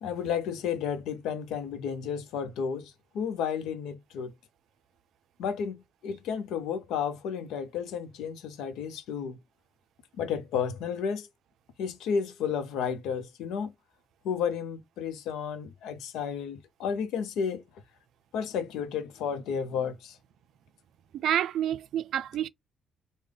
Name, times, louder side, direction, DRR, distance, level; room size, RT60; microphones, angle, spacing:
voice 1, 0.0-4.3 5.4-9.4 10.2-11.3 11.8-13.7 14.2-17.6 18.3-20.1, left 7 dB, 90° left, 0.6 m, -32 dB
voice 2, 21.1-22.5, right 11 dB, 75° right, 0.4 m, -28 dB
3.2 x 2.1 x 3.8 m
cardioid pair, 90°, 0 cm